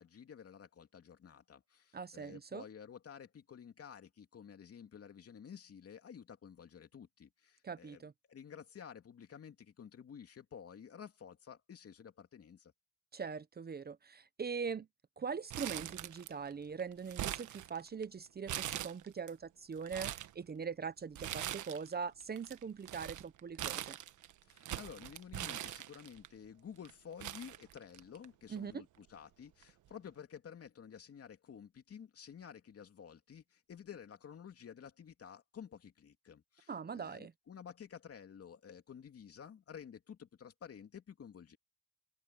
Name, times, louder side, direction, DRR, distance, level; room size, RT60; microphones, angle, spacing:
voice 1, 0.0-12.7 24.4-41.6, left 8 dB, 50° left, 2.8 m, -52 dB
voice 2, 1.9-2.6 7.6-8.1 13.1-14.9 15.2-24.0 28.5-28.8 36.7-37.3, right 6 dB, 30° right, 0.9 m, -42 dB
Crumpling crinkling, 15.5-16.5 16.8-18.0 18.5-19.3 19.7-20.3 21.2-21.9 22.2-26.3 26.9-27.0 27.2-28.3 28.6-28.7 29.6-29.9, right 12 dB, 75° right, 1.4 m, -42 dB
open air
cardioid pair, 90°, 30 cm